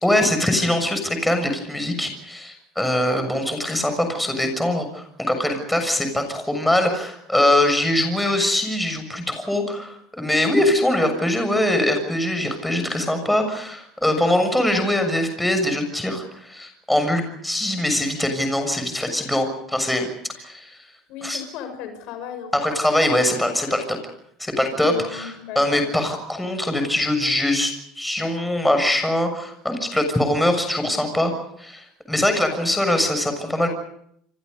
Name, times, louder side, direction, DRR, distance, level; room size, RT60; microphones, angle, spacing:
voice 1, 0.0-20.1 20.4-20.8 21.2-21.4 22.5-24.0 24.4-31.3 31.6-33.7, left 1 dB, 5° left, 6 dB, 6.9 m, -22 dB
voice 2, 21.1-22.6 24.8-25.9, left 8 dB, 65° left, 9 dB, 6.5 m, -36 dB
29.5 x 25.5 x 5.4 m, 0.69 s
supercardioid pair, 120°, 0 cm